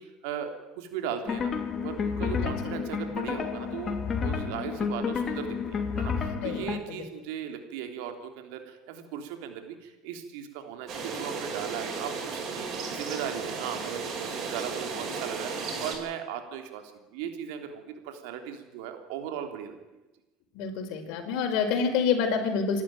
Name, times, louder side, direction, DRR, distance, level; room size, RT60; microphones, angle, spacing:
voice 1, 0.0-19.8, right 8 dB, 80° right, 6 dB, 3.3 m, -38 dB
sound 1, 1.2-6.8, left 6 dB, 35° left, 3.1 m, -30 dB
sound 2, 10.9-15.9, right 4 dB, 50° right, 7.7 m, -34 dB
voice 2, 20.5-22.8, left 6 dB, 70° left, 4 dB, 4.8 m, -27 dB
26.5 x 12.5 x 9.1 m, 1.1 s
supercardioid pair, 95°, 0 cm